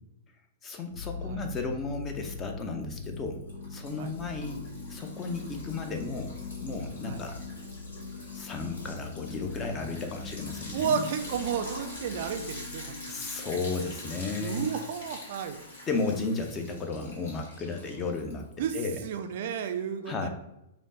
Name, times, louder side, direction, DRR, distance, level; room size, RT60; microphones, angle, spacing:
voice 1, 0.6-3.4 3.7-4.6 4.9-6.3 6.6-7.4 8.3-11.0 13.1-14.7 15.9-18.5 18.7-19.1 20.1-20.3, left 3 dB, 20° left, 4 dB, 0.5 m, -34 dB
sound 1, 0.9-17.9 19.1-19.2, left 4 dB, 75° left, 0.8 m, -43 dB
Liquid, 1.6-2.2 2.5-18.7, left 1 dB, 55° left, 1.4 m, -45 dB
voice 2, 10.7-12.8 13.1-13.2 14.4-15.6 18.6-18.8 19.0-20.3, right 7 dB, 50° right, 8 dB, 0.3 m, -32 dB
5.0 x 2.1 x 3.8 m, 0.87 s
figure-of-eight pair, 105°, 0 cm